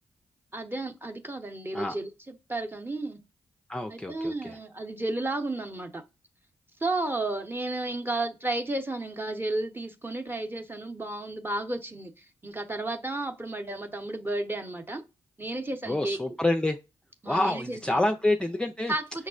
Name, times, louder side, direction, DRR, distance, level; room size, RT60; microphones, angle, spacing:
voice 1, 0.5-3.2 3.9-6.0 6.8-15.0 15.4-16.2 17.2-18.0 18.9-19.3, right 2 dB, 20° right, 0.8 m, -33 dB
voice 2, 3.7-4.6 15.9-16.8 17.3-18.9, left 1 dB, 10° left, 0.4 m, -27 dB
5.4 x 2.1 x 2.4 m
supercardioid pair, 45°, 11 cm